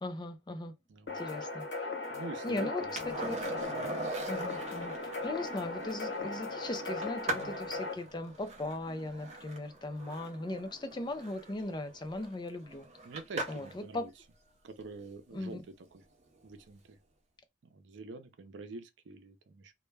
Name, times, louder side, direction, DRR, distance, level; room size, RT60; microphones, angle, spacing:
voice 1, 0.0-0.7 1.1-1.6 2.4-3.4 4.3-12.9 13.5-14.1 15.3-15.6, left 2 dB, 25° left, 0.4 m, -38 dB
voice 2, 0.9-1.4 2.1-2.9 3.2-3.4 3.7-3.9 7.3-7.5 13.0-14.1 14.6-15.6 15.9-16.0 16.4-17.0 17.7-19.7, right 3 dB, 85° right, 0.5 m, -46 dB
sound 1, 1.1-7.9, left 3 dB, 65° left, 0.9 m, -38 dB
Skateboard, 3.0-13.8 16.4-16.5, right 2 dB, 35° right, 0.5 m, -42 dB
2.2 x 2.0 x 3.2 m
head